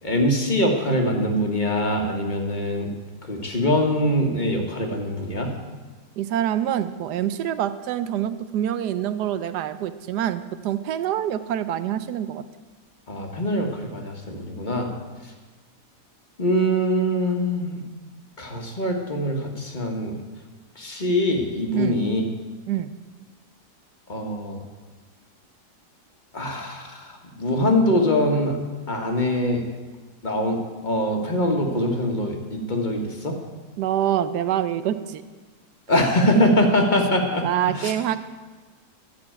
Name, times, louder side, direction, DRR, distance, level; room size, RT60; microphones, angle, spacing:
voice 1, 0.0-2.9 3.3-5.5 13.1-14.9 16.4-17.8 18.4-20.2 20.8-22.2 24.1-24.6 26.3-27.0 27.4-28.6 28.9-29.6 30.2-33.4 35.9-37.9, left 1 dB, 30° left, 2 dB, 1.5 m, -23 dB
voice 2, 6.2-12.4 21.7-22.0 22.7-22.9 33.8-35.2 37.4-38.2, right 10 dB, 80° right, 12 dB, 1.2 m, -26 dB
12.5 x 6.0 x 8.8 m, 1.3 s
omnidirectional pair, 1.8 m